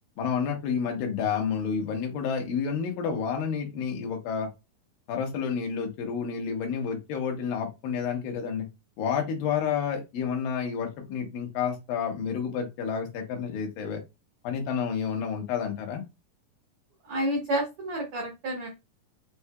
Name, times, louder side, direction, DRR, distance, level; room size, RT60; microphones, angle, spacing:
voice 1, 0.2-4.5 5.1-8.7 9.0-14.0 14.4-16.0, left 6 dB, 90° left, 3 dB, 2.8 m, -30 dB
voice 2, 17.0-18.7, right 1 dB, 80° right, 1 dB, 1.2 m, -29 dB
7.0 x 2.8 x 2.3 m, 0.24 s
omnidirectional pair, 3.9 m